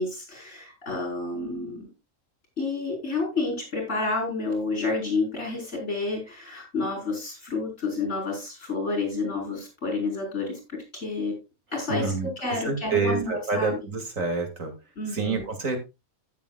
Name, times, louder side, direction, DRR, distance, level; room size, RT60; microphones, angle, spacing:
voice 1, 0.0-1.9 2.6-11.4 11.7-13.8 15.0-15.4, left 3 dB, 60° left, 2 dB, 4.9 m, -30 dB
voice 2, 11.9-12.3 12.6-14.7 15.1-15.8, right 4 dB, 90° right, 4 dB, 2.7 m, -27 dB
15.0 x 7.0 x 2.4 m, 0.25 s
omnidirectional pair, 1.3 m